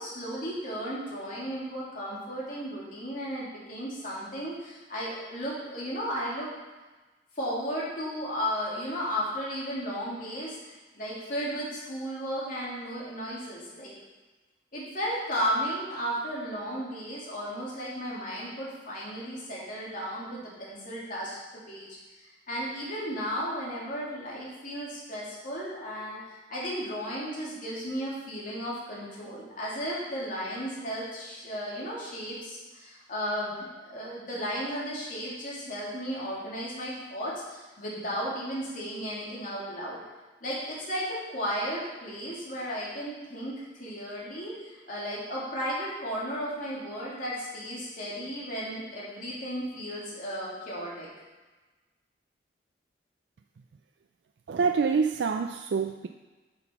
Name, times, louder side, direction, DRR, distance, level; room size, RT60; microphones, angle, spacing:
voice 1, 0.0-6.5 7.4-13.9 14.7-21.4 21.7-40.0 40.4-51.1, equal, 50° left, -6 dB, 2.8 m, -34 dB
voice 2, 54.5-56.1, right 5 dB, 75° right, 6 dB, 0.4 m, -26 dB
7.7 x 5.8 x 5.9 m, 1.2 s
head